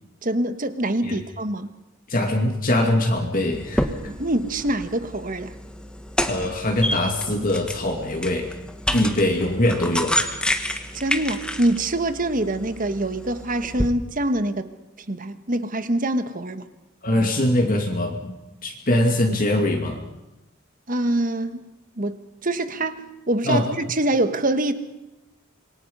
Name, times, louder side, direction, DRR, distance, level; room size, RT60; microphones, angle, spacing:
voice 1, 0.2-1.7 4.1-5.5 10.9-14.7 15.1-16.7 20.9-21.6 22.0-24.7, right 1 dB, 40° right, 1.4 m, -25 dB
voice 2, 2.1-3.9 6.3-8.5 8.9-10.3 17.0-18.3 18.6-20.0 23.4-23.7, left 1 dB, 40° left, 2.5 m, -22 dB
sound 1, 3.5-13.9, left 1 dB, 5° left, 1.4 m, -29 dB
26.5 x 23.0 x 5.5 m
head